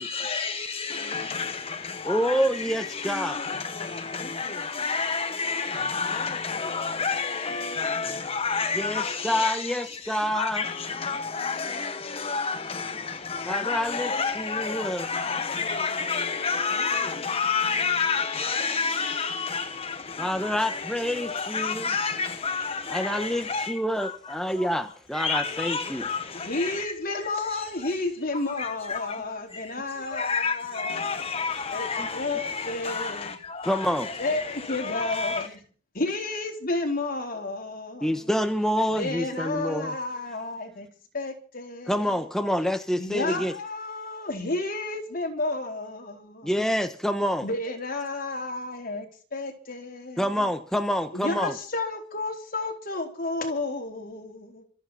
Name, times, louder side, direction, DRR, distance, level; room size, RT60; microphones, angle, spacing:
voice 1, 0.0-24.8 25.1-28.0 28.3-35.5, left 5 dB, 30° left, 1.0 m, -30 dB
voice 2, 2.0-3.4 8.8-10.6 13.5-15.1 20.2-21.9 22.9-26.0 32.0-32.1 33.6-34.1 38.0-39.9 41.9-43.5 46.4-47.5 50.2-51.6, equal, 5° left, 1.1 m, -27 dB
voice 3, 26.3-31.3 31.7-33.4 34.2-35.6 35.9-38.3 38.9-40.9 41.1-42.2 43.0-46.5 47.4-50.5 51.1-54.6, left 2 dB, 45° left, 4.1 m, -32 dB
26.0 x 8.9 x 5.8 m
head